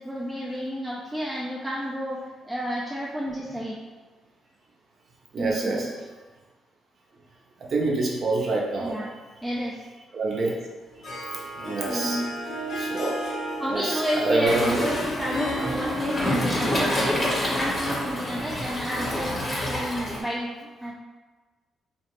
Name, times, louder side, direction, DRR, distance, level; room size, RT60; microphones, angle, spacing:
voice 1, 0.0-3.8 5.4-5.9 8.8-9.1 9.4-9.8 11.8-12.2 13.6-20.9, equal, 5° right, -5 dB, 0.4 m, -31 dB
voice 2, 5.3-5.9 7.7-8.9 10.1-10.6 11.3-12.2 12.7-13.1 13.7-14.8 18.4-18.6, right 3 dB, 50° right, -2 dB, 0.6 m, -26 dB
Harp, 10.8-19.8, left 1 dB, 60° left, 0.7 m, -34 dB
Waves surf, 14.5-20.2, equal, 25° left, 0.8 m, -28 dB
2.8 x 2.0 x 3.0 m, 1.3 s
cardioid pair, 90°, 0 cm